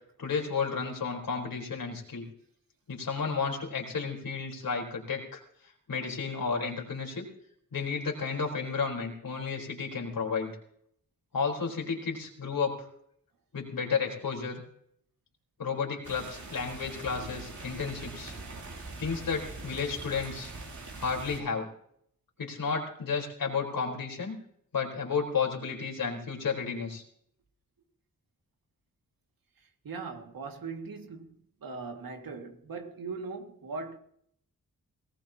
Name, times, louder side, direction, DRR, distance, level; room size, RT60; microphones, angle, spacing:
voice 1, 0.2-2.2 2.9-5.4 5.9-7.2 7.7-10.5 11.3-12.9 13.5-14.6 15.6-18.3 19.0-20.5 21.0-21.7 22.4-24.4 24.7-27.0, left 5 dB, 75° left, 4.3 m, -32 dB
sound 1, 16.0-21.4, right 3 dB, 55° right, 3.1 m, -43 dB
voice 2, 29.8-31.3 31.6-34.0, right 4 dB, 80° right, 2.2 m, -39 dB
19.5 x 18.5 x 2.9 m
cardioid pair, 55°, 35 cm